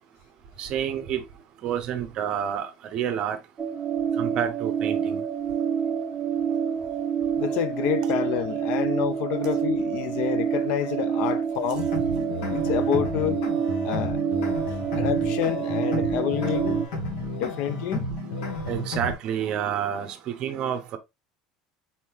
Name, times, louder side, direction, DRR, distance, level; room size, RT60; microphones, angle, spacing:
voice 1, 0.6-1.2 1.6-3.4 4.2-5.2 18.7-21.0, right 9 dB, 40° right, 0.7 m, -29 dB
sound 1, 3.6-16.9, right 7 dB, 20° right, 0.4 m, -27 dB
voice 2, 7.4-11.9 12.5-13.4 13.8-14.2 14.7-16.8 17.3-18.1, left 10 dB, 55° left, 0.5 m, -28 dB
sound 2, 11.8-19.1, left 1 dB, 75° left, 1.6 m, -32 dB
4.2 x 3.6 x 2.9 m
cardioid pair, 170°, 2 cm